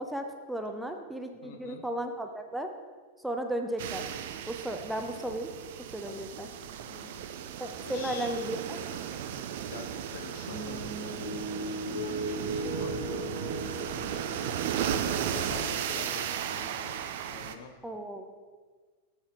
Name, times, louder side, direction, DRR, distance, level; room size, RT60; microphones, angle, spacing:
voice 1, 0.0-2.7 3.2-4.0 4.5-5.5 5.9-6.5 7.6-8.8 17.8-18.4, right 1 dB, 5° right, 5 dB, 0.6 m, -35 dB
voice 2, 1.4-1.9 6.0-7.3 7.8-8.4 9.7-11.3 11.9-13.8 15.3-17.8, left 5 dB, 55° left, 5 dB, 0.8 m, -46 dB
sound 1, 3.8-17.6, right 9 dB, 55° right, 0.4 m, -35 dB
sound 2, 10.5-17.0, right 1 dB, 90° left, 1.4 m, -38 dB
7.5 x 5.8 x 4.3 m, 1.5 s
figure-of-eight pair, 90°, 0 cm